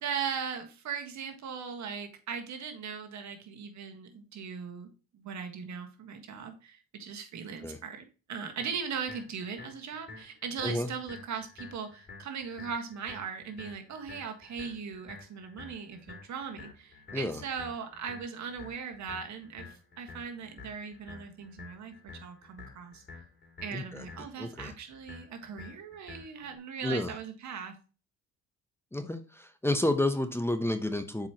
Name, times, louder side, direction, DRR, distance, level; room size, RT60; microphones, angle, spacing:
voice 1, 0.0-4.9 5.1-21.9 22.2-23.0 23.6-27.7, right 6 dB, 65° right, 5 dB, 1.6 m, -39 dB
sound 1, 8.6-26.6, left 4 dB, 35° left, 2.8 m, -50 dB
voice 2, 23.7-24.0 24.4-24.7 26.8-27.1 28.9-31.3, left 1 dB, 10° left, 8 dB, 0.8 m, -30 dB
7.3 x 4.8 x 2.9 m, 0.34 s
cardioid pair, 90°, 30 cm